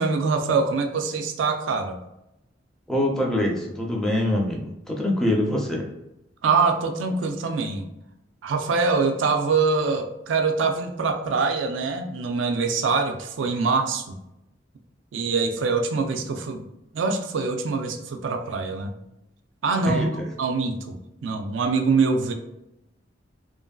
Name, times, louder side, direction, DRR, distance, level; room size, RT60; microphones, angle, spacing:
voice 1, 0.0-2.0 6.4-7.9 8.4-14.2 15.1-16.7 16.9-18.9 19.6-20.1 20.4-21.0 21.2-22.3, right 4 dB, 85° right, 6 dB, 0.4 m, -24 dB
voice 2, 2.9-5.9 19.9-20.1, left 1 dB, 5° left, -2 dB, 0.5 m, -24 dB
2.8 x 2.5 x 2.2 m, 0.88 s
head